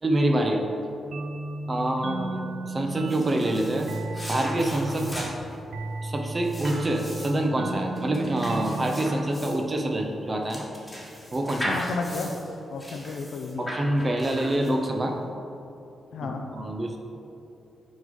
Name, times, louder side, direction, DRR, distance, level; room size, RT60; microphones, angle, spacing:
voice 1, 0.0-0.6 1.7-3.9 4.3-5.3 6.0-10.7 11.3-11.8 13.6-15.1 16.2-17.0, right 1 dB, 30° right, 3 dB, 0.7 m, -26 dB
sound 1, 1.1-10.5, right 3 dB, 70° right, 0.4 m, -35 dB
voice 2, 1.8-2.3 5.0-5.3 11.7-12.4 12.7-13.7 16.1-16.4, left 4 dB, 80° left, 4 dB, 0.5 m, -34 dB
sound 2, 2.9-15.0, equal, 5° left, 1.4 m, -38 dB
6.2 x 3.7 x 5.3 m, 2.8 s
cardioid pair, 100°, 0 cm